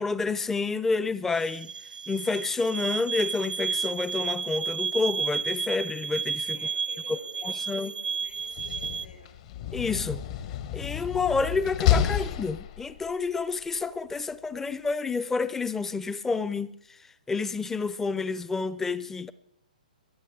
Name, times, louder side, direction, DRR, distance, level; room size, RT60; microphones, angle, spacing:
voice 1, 0.0-1.7 2.1-6.6 7.4-7.9 9.7-10.2 10.7-16.7 17.3-19.3, left 4 dB, 10° left, 0.5 m, -29 dB
sound 1, 1.3-9.1, right 6 dB, 80° right, 0.4 m, -32 dB
voice 2, 6.5-9.4, left 2 dB, 85° left, 5.8 m, -50 dB
Slam, 8.4-13.1, left 10 dB, 45° left, 0.8 m, -29 dB
22.0 x 13.0 x 3.5 m
figure-of-eight pair, 130°, 5 cm